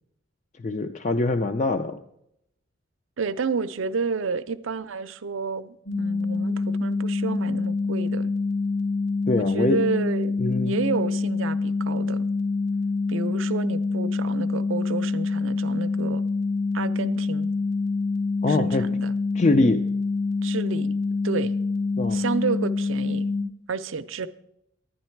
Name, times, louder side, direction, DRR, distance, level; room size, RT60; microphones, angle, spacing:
voice 1, 0.6-2.0 9.3-9.8 10.4-10.8 18.4-18.8 19.3-19.8 22.0-22.2, left 2 dB, 35° left, 0.4 m, -23 dB
voice 2, 3.2-8.3 9.4-10.3 10.6-12.3 13.1-16.2 16.7-17.5 18.5-19.1 20.4-20.9 21.2-21.5 22.1-23.3 23.7-24.3, right 4 dB, 75° right, 0.5 m, -30 dB
sound 1, 5.9-23.4, left 3 dB, 80° left, 1.8 m, -26 dB
11.0 x 10.0 x 4.5 m
head